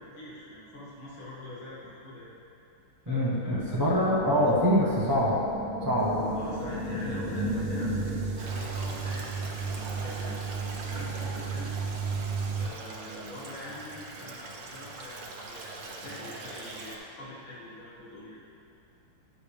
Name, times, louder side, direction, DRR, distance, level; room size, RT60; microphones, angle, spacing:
voice 1, 0.0-2.3 3.1-4.0 4.3-4.4 6.4-8.1 8.3-10.4 10.7-11.9 12.5-18.4, left 1 dB, 65° left, -8 dB, 2.8 m, -44 dB
voice 2, 3.1-5.4 5.8-6.3, equal, 20° right, -7 dB, 0.5 m, -25 dB
sound 1, 3.5-8.5, equal, 10° left, 1.1 m, -35 dB
sound 2, 6.0-12.7, right 5 dB, 65° right, 1.5 m, -34 dB
Stream, 8.4-17.0, right 3 dB, 80° right, 1.9 m, -43 dB
12.5 x 7.6 x 3.4 m, 2.6 s
omnidirectional pair, 2.4 m